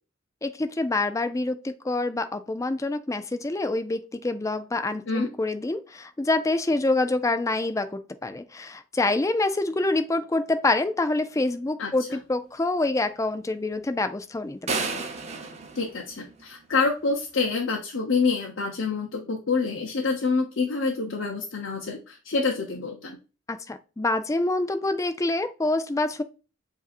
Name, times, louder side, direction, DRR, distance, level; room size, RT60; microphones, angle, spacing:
voice 1, 0.4-15.0 23.5-26.2, left 2 dB, 15° left, 0.4 m, -26 dB
sound 1, 14.7-16.8, right 4 dB, 35° right, 0.7 m, -32 dB
voice 2, 15.7-23.2, left 4 dB, 70° left, 0.8 m, -27 dB
7.3 x 2.7 x 2.4 m
head